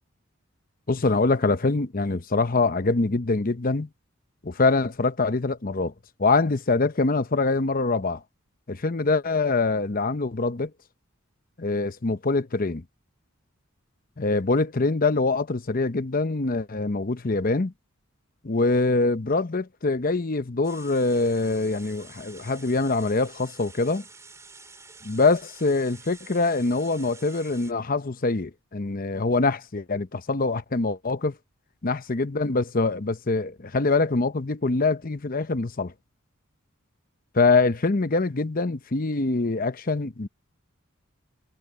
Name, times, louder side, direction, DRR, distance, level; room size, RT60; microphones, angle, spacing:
voice 1, 0.9-3.9 4.4-5.9 6.2-8.2 8.7-10.7 11.6-12.8 14.2-17.7 18.4-24.0 25.0-31.3 31.8-35.9 37.3-40.3, left 3 dB, 40° left, 0.8 m, -24 dB
sound 1, 20.6-27.7, right 4 dB, 15° right, 3.4 m, -48 dB
head